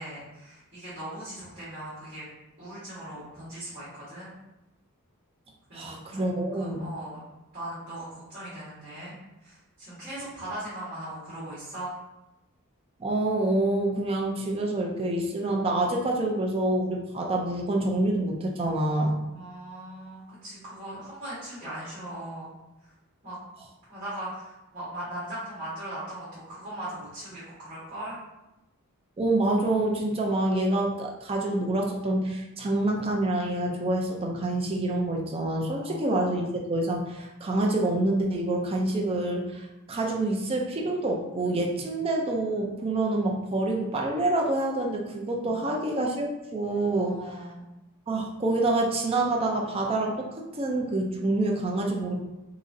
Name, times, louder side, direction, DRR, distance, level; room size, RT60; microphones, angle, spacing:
voice 1, 0.0-2.2 2.6-4.3 5.7-6.3 6.5-7.2 7.5-9.1 9.4-11.9 19.3-22.5 22.8-22.9 23.2-23.4 23.9-28.2 35.8-36.0 45.4-45.8 47.0-47.7, right 1 dB, 45° right, -11 dB, 1.4 m, -39 dB
voice 2, 5.7-6.8 13.0-19.1 29.2-47.4 48.1-52.2, right 2 dB, 25° right, 0 dB, 0.4 m, -27 dB
3.7 x 3.0 x 2.6 m, 0.97 s
head